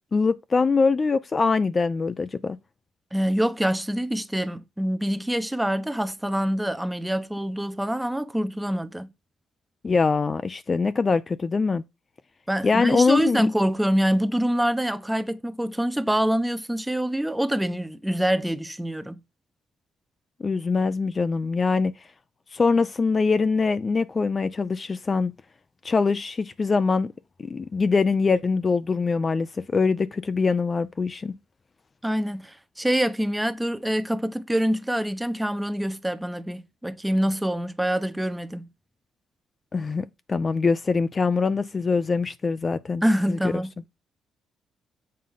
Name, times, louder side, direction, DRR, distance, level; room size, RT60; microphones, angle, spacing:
voice 1, 0.1-2.6 9.8-11.8 12.6-13.5 20.4-21.9 22.5-25.3 25.8-27.1 27.4-31.3 39.7-43.5, left 4 dB, 35° left, 0.5 m, -23 dB
voice 2, 3.1-9.1 12.5-19.2 32.0-38.7 43.0-43.7, equal, 5° right, 0.8 m, -25 dB
7.6 x 3.8 x 5.5 m
cardioid pair, 90°, 0 cm